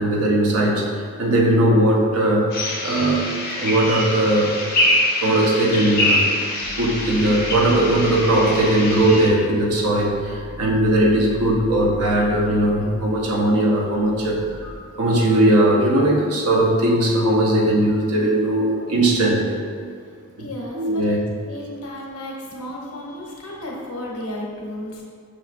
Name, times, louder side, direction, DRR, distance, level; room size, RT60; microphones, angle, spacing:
voice 1, 0.0-2.5 2.8-3.3 3.6-4.9 5.2-6.4 6.8-19.6 20.4-20.5 20.7-21.2, right 1 dB, 85° right, -1 dB, 0.8 m, -19 dB
sound 1, 2.5-9.3, left 1 dB, 45° left, 0.8 m, -24 dB
sound 2, 6.6-14.8, left 1 dB, 60° left, 0.4 m, -38 dB
voice 2, 20.4-21.1 21.4-25.0, left 1 dB, 75° left, -2 dB, 0.8 m, -33 dB
6.0 x 3.1 x 2.5 m, 2.1 s
head